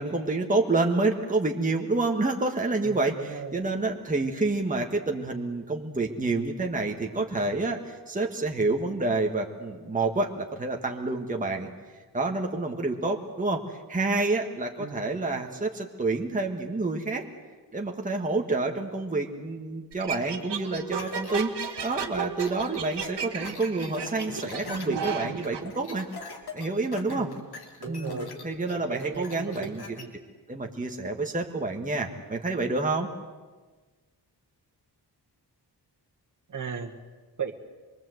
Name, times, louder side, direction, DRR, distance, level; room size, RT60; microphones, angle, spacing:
voice 1, 0.0-11.7 12.1-17.2 17.7-21.5 21.8-26.1 26.5-27.3 27.9-29.8 30.5-33.1, right 3 dB, 20° right, 2 dB, 1.6 m, -28 dB
voice 2, 2.8-3.6 14.8-15.1 27.1-27.5 27.8-28.3 28.7-30.2 36.5-36.9 37.4-37.5, right 6 dB, 50° right, 4 dB, 1.9 m, -36 dB
sound 1, 19.9-25.6, right 7 dB, 90° right, 2.0 m, -34 dB
sound 2, 21.0-30.0, left 4 dB, 70° left, 3.3 m, -42 dB
26.0 x 23.0 x 7.9 m, 1.3 s
wide cardioid pair, 175°, 40 cm